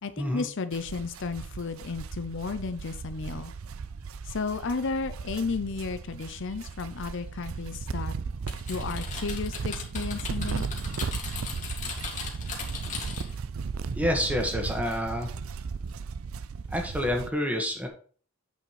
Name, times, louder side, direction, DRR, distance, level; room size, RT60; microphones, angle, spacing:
voice 1, 0.0-3.5 4.3-8.1 8.7-10.6, left 4 dB, 60° left, 12 dB, 0.6 m, -33 dB
sound 1, 0.7-17.3, right 5 dB, 85° right, 0.5 m, -36 dB
Typing, 8.5-13.4, left 5 dB, 35° left, 2.2 m, -38 dB
voice 2, 13.9-15.3 16.7-17.9, equal, 5° right, 3 dB, 1.7 m, -28 dB
9.0 x 5.1 x 4.8 m, 0.42 s
head